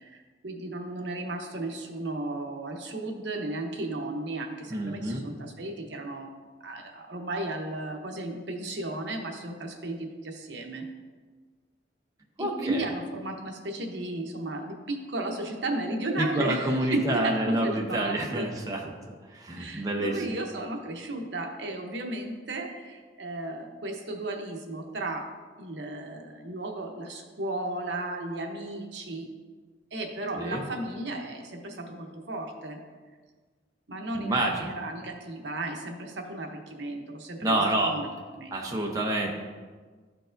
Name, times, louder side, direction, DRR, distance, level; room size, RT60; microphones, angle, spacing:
voice 1, 0.0-6.3 6.6-10.9 12.4-18.5 19.6-25.3 25.6-29.3 29.9-32.8 33.9-38.1 38.4-38.8, right 2 dB, 70° right, 3 dB, 0.9 m, -34 dB
voice 2, 4.7-5.2 12.4-12.8 16.2-18.9 19.3-20.1 30.4-30.6 34.1-34.7 37.4-38.0 38.5-39.3, right 1 dB, 20° right, -1 dB, 0.6 m, -28 dB
12.5 x 4.6 x 2.6 m, 1.5 s
head